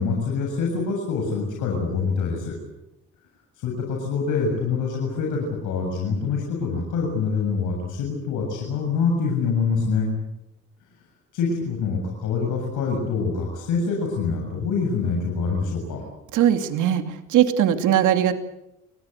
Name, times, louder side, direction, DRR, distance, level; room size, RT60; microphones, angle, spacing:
voice 1, 0.0-2.6 3.6-10.1 11.3-16.0, left 5 dB, 85° left, 0 dB, 7.5 m, -25 dB
voice 2, 16.3-18.3, right 10 dB, 90° right, 7 dB, 2.6 m, -20 dB
29.5 x 20.5 x 8.2 m, 0.89 s
cardioid pair, 90°, 30 cm